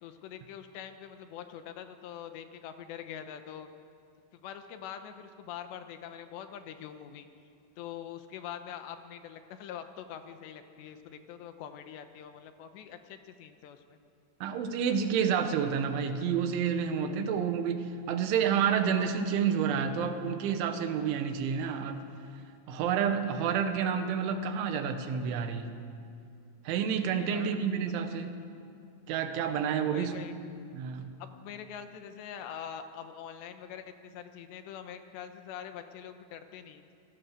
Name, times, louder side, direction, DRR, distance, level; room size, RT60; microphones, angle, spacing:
voice 1, 0.0-3.7 4.3-7.3 7.8-14.0 27.2-27.7 29.9-30.4 31.2-36.9, left 9 dB, 75° left, 8 dB, 3.1 m, -44 dB
voice 2, 14.4-22.0 22.7-25.8 26.7-28.3 29.1-30.2 30.7-31.1, right 7 dB, 90° right, 7 dB, 3.8 m, -29 dB
28.5 x 17.0 x 6.7 m, 2.4 s
omnidirectional pair, 5.3 m